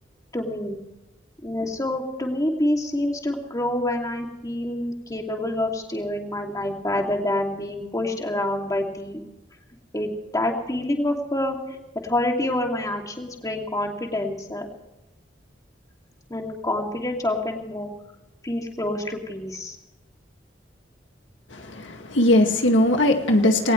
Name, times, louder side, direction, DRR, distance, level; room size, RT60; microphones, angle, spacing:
voice 1, 0.3-0.8 1.4-9.2 9.9-11.8 12.0-14.7 16.3-17.9 18.4-19.8, left 1 dB, 20° left, 1 dB, 2.6 m, -27 dB
voice 2, 21.5-23.7, left 1 dB, 85° left, 4 dB, 2.1 m, -19 dB
20.5 x 19.0 x 3.2 m, 1.0 s
head